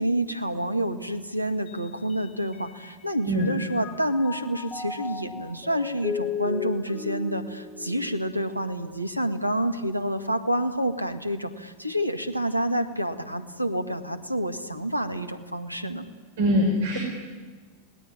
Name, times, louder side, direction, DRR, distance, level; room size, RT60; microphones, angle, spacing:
voice 1, 0.0-16.1, right 1 dB, 90° right, 8 dB, 1.9 m, -28 dB
Mallet percussion, 1.7-3.0 3.4-8.8, left 6 dB, 25° left, 2.6 m, -36 dB
voice 2, 16.4-17.0, equal, 60° right, 1 dB, 5.9 m, -22 dB
29.0 x 20.0 x 10.0 m, 1.4 s
figure-of-eight pair, 90°, 0 cm